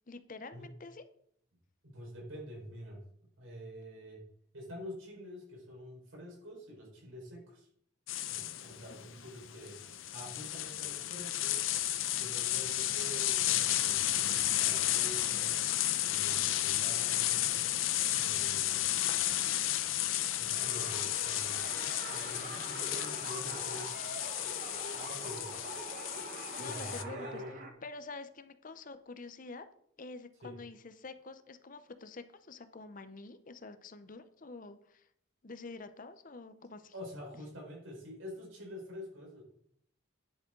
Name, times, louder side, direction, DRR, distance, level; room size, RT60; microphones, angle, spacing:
voice 1, 0.1-1.0 8.9-9.2 26.6-27.4 27.8-29.7 30.0-35.1 35.4-36.9, left 3 dB, 40° left, 11 dB, 0.7 m, -47 dB
voice 2, 1.8-3.0 3.4-4.2 4.5-7.7 8.3-11.7 12.2-15.6 16.1-17.6 18.1-18.8 20.4-21.6 22.1-24.1 24.9-25.5 26.6-27.6 30.4-30.5 36.9-39.4, equal, 85° right, -2 dB, 4.7 m, -47 dB
sound 1, 8.1-27.0, left 13 dB, 85° left, 0.6 m, -33 dB
sound 2, 20.5-27.7, right 2 dB, 45° right, 1.4 m, -44 dB
10.5 x 7.8 x 3.8 m, 0.68 s
head